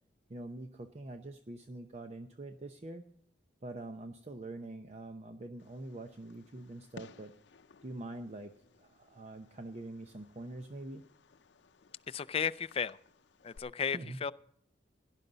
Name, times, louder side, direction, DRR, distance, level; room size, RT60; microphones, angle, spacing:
voice 1, 0.3-3.0 3.6-7.3 7.8-11.1 13.9-14.2, right 2 dB, 40° right, 6 dB, 0.7 m, -45 dB
Fireworks, 5.6-13.6, left 4 dB, 85° left, 0.6 m, -59 dB
voice 2, 12.1-13.0 13.4-14.3, left 7 dB, 35° left, 14 dB, 0.4 m, -34 dB
17.5 x 11.0 x 4.0 m, 0.68 s
head